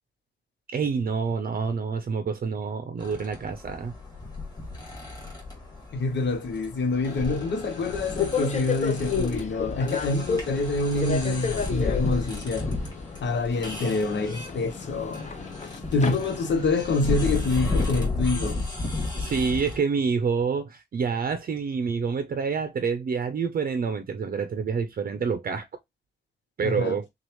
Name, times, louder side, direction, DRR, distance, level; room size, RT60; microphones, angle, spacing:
voice 1, 0.7-3.9 19.2-25.7 26.6-27.1, right 5 dB, 55° right, 0.5 m, -27 dB
sound 1, 3.0-19.8, left 3 dB, 20° left, 2.0 m, -33 dB
voice 2, 5.9-12.7 13.2-15.3 15.6-18.7 26.6-27.0, left 3 dB, 90° left, 0.8 m, -26 dB
Subway metro underground, 7.0-16.8, left 5 dB, 40° left, 0.7 m, -33 dB
6.2 x 2.4 x 3.0 m
wide cardioid pair, 175°, 18 cm